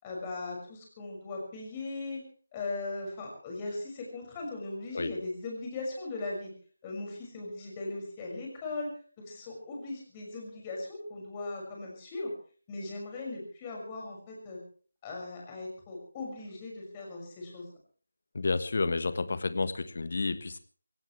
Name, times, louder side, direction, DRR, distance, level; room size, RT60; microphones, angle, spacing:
voice 1, 0.0-2.2 2.5-6.5 6.8-8.9 9.2-12.3 12.7-14.6 15.0-17.7, left 2 dB, 20° left, -1 dB, 5.9 m, -38 dB
voice 2, 18.3-20.6, left 3 dB, 45° left, 13 dB, 1.4 m, -30 dB
24.0 x 17.0 x 3.3 m, 0.42 s
figure-of-eight pair, 160°, 0 cm